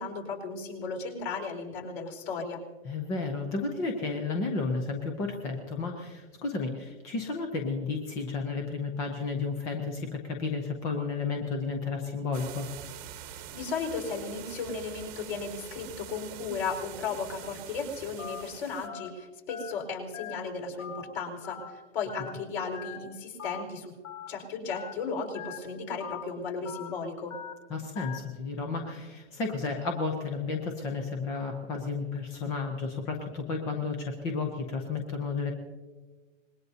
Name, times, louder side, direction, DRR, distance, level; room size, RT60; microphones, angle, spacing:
voice 1, 0.0-2.6 13.3-23.9 24.3-27.3, left 4 dB, 50° left, 3 dB, 4.6 m, -35 dB
voice 2, 2.8-12.7 27.7-35.5, left 4 dB, 10° left, 3 dB, 0.4 m, -32 dB
sound 1, 12.3-18.9, right 10 dB, 25° right, 1.0 m, -45 dB
Telephone, 18.2-18.4 18.8-19.1 19.5-19.7 20.1-20.4 20.8-21.0 21.4-21.7 22.1-22.3 22.7-23.0 23.4-23.6 24.0-24.3 24.7-24.9 25.3-25.6 26.0-26.2 26.7-26.9 27.3-27.5 28.0-28.2, left 10 dB, 75° left, 2.4 m, -41 dB
25.5 x 21.0 x 2.7 m, 1.3 s
hypercardioid pair, 160°, 38 cm